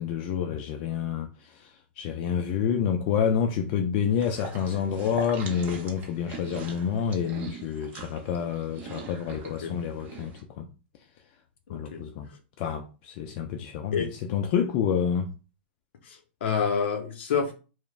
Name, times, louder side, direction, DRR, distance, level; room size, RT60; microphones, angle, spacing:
voice 1, 0.0-10.7 11.7-12.3 12.6-15.3, left 7 dB, 45° left, 0.3 m, -28 dB
sound 1, 4.1-10.4, right 4 dB, 30° right, 0.6 m, -42 dB
voice 2, 9.4-9.8 11.7-12.1 13.9-14.1 16.0-17.5, left 6 dB, 70° left, 0.7 m, -28 dB
3.0 x 2.0 x 2.3 m
hypercardioid pair, 125°, 6 cm